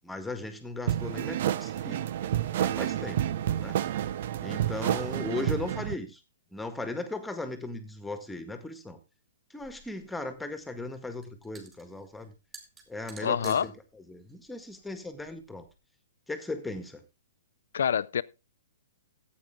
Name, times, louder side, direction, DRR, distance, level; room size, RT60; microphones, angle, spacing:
voice 1, 0.0-2.1 2.5-3.2 3.6-3.7 4.4-6.2 6.5-9.0 9.5-12.3 12.9-13.7 14.1-15.6 16.3-17.0, left 2 dB, 5° left, 1.8 m, -37 dB
sound 1, 0.9-5.9, right 11 dB, 55° right, 0.7 m, -29 dB
sound 2, 9.6-15.7, right 4 dB, 15° right, 3.3 m, -53 dB
voice 2, 13.2-13.7 17.7-18.2, left 8 dB, 65° left, 0.5 m, -26 dB
14.5 x 8.6 x 3.7 m
figure-of-eight pair, 120°, 0 cm